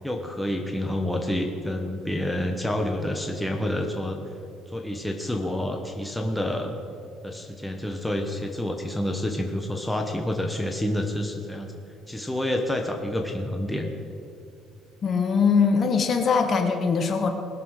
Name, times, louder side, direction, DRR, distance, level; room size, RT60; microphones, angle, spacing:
voice 1, 0.0-4.2 4.7-6.8 7.2-11.7 12.1-13.9, left 1 dB, 5° left, 2 dB, 1.0 m, -28 dB
voice 2, 15.0-17.3, left 5 dB, 35° left, 6 dB, 1.3 m, -21 dB
20.0 x 6.8 x 6.4 m, 2.5 s
cardioid pair, 150°, 0 cm